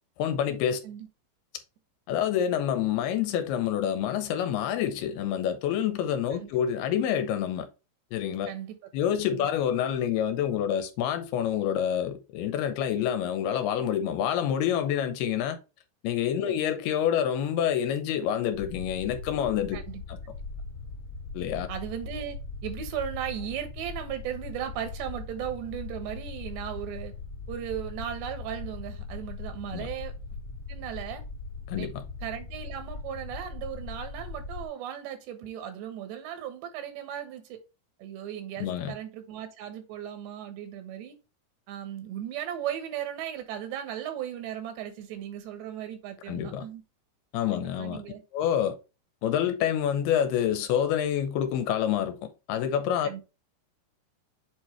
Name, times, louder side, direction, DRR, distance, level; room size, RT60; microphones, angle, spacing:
voice 1, 0.2-0.8 2.1-7.7 8.1-8.5 8.9-15.6 16.0-19.8 20.1-20.2 21.3-21.7 29.7-29.9 31.7-32.0 38.6-38.9 46.3-46.7 47.3-48.0 48.3-48.8 49.2-53.1, left 9 dB, 80° left, 2.6 m, -27 dB
voice 2, 8.5-8.9 9.3-9.5 16.4-16.5 19.7-20.0 21.7-22.4 22.6-27.1 27.5-30.1 30.7-31.2 31.7-31.9 32.2-37.6 38.0-41.2 41.7-46.8 47.5-48.2 53.0-53.2, right 10 dB, 85° right, 3.4 m, -36 dB
sound 1, 18.5-34.7, left 4 dB, 45° left, 1.9 m, -40 dB
7.9 x 4.5 x 3.2 m
omnidirectional pair, 4.9 m